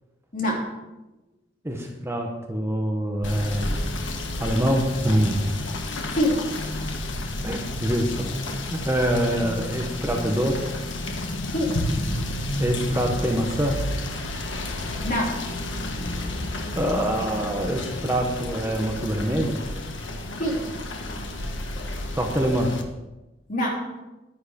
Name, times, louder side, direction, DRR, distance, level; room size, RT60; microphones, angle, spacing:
voice 1, 0.3-0.7 6.1-6.4 11.5-11.8 15.0-15.4 20.4-20.6 21.7-21.9 23.5-23.8, equal, 45° left, -2 dB, 3.4 m, -25 dB
voice 2, 1.6-4.0 4.4-5.6 7.4-8.4 8.7-10.7 12.6-13.8 16.1-16.3 16.7-19.6 22.2-22.7, equal, 15° right, 1 dB, 1.2 m, -25 dB
Rain / Motor vehicle (road), 3.2-22.8, left 1 dB, 80° left, 1.4 m, -31 dB
sound 1, 3.2-11.2, left 1 dB, 40° right, 3.8 m, -49 dB
11.0 x 10.0 x 5.2 m, 1.0 s
head